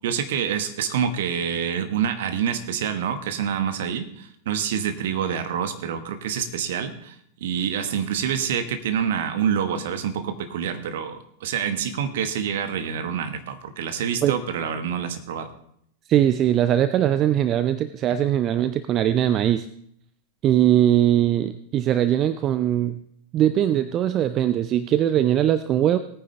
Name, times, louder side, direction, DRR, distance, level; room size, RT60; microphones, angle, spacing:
voice 1, 0.0-15.5, right 8 dB, 55° right, 8 dB, 1.2 m, -27 dB
voice 2, 16.1-19.7 20.4-23.0 23.3-26.0, right 11 dB, 30° right, 12 dB, 0.5 m, -21 dB
18.0 x 9.3 x 3.3 m, 0.69 s
figure-of-eight pair, 90°, 0 cm